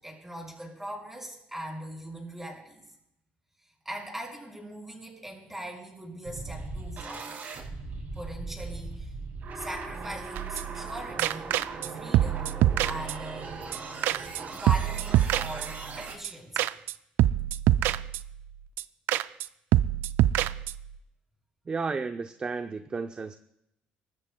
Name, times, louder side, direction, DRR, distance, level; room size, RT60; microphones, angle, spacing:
voice 1, 0.0-2.9 3.8-7.3 8.1-9.1 9.5-11.5 11.9-12.5 12.8-13.6 14.2-16.7, right 1 dB, 10° right, 0 dB, 5.9 m, -40 dB
sound 1, 6.2-16.1, right 4 dB, 55° right, 5.5 m, -39 dB
sound 2, 10.4-10.9 11.2-11.9 12.1-13.4 13.7-13.8 14.0-14.4 14.7-16.0 16.2-16.3 16.6-16.9 17.2-18.5 18.8-18.9 19.1-19.5 19.7-21.0, right 13 dB, 75° right, 0.4 m, -25 dB
voice 2, 21.7-23.3, right 4 dB, 30° right, 8 dB, 0.6 m, -32 dB
25.0 x 13.5 x 2.3 m, 0.82 s
cardioid pair, 90°, 4 cm